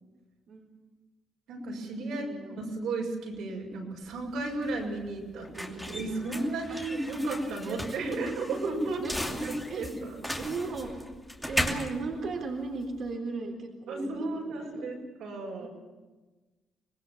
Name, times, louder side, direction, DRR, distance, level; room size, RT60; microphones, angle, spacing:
voice 1, 1.5-9.0 9.3-10.2 13.9-15.7, right 2 dB, 80° right, -1 dB, 6.6 m, -34 dB
voice 2, 2.0-2.6 6.7-6.8 7.7-8.2 9.0-9.2 9.7-9.9 10.4-10.9 11.5-14.3 14.7-14.9 15.6-15.7, right 3 dB, 60° right, 2 dB, 3.8 m, -36 dB
sound 1, 4.0-13.1, left 1 dB, 5° left, 2.8 m, -37 dB
25.0 x 20.0 x 7.3 m, 1.2 s
cardioid pair, 90°, 0 cm